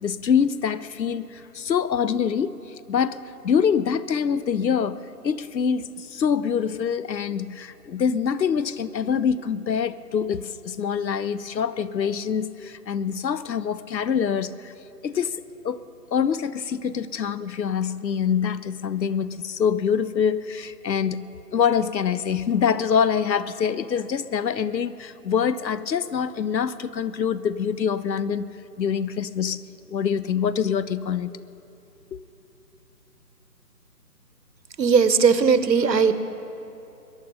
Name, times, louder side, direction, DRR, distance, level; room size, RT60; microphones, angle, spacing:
voice 1, 0.0-2.5 2.9-5.0 5.2-14.7 15.0-15.8 16.1-28.5 28.8-29.6 29.9-31.3 32.1-32.2, left 7 dB, 90° left, 17 dB, 0.8 m, -25 dB
voice 2, 34.8-36.1, right 6 dB, 80° right, 12 dB, 1.1 m, -18 dB
22.5 x 10.5 x 5.5 m, 2.8 s
figure-of-eight pair, 160°, 50 cm